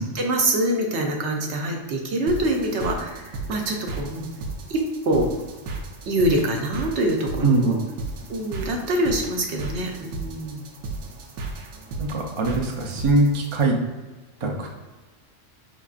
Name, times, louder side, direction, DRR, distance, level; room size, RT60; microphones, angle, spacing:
voice 1, 0.0-4.3 4.7-5.3 6.1-7.8 8.3-10.6, right 1 dB, 65° right, 1 dB, 1.0 m, -25 dB
sound 1, 2.3-13.6, right 3 dB, 90° right, 1.1 m, -35 dB
voice 2, 7.4-7.7 12.0-13.8 14.4-14.8, right 2 dB, 40° right, 0 dB, 0.4 m, -22 dB
5.2 x 3.5 x 2.4 m, 1.2 s
omnidirectional pair, 1.3 m